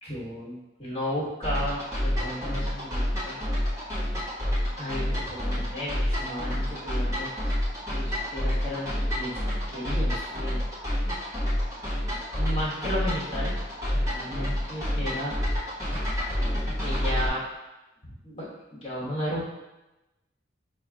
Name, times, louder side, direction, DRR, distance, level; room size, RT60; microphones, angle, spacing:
voice 1, 0.0-3.4 4.8-7.5 7.9-9.4 9.7-10.6 12.4-13.6 13.9-15.3 16.8-17.4 18.0-19.5, equal, 30° left, -7 dB, 1.3 m, -34 dB
sound 1, 1.4-17.3, equal, 20° right, 1.2 m, -29 dB
6.3 x 2.5 x 2.3 m, 1.0 s
head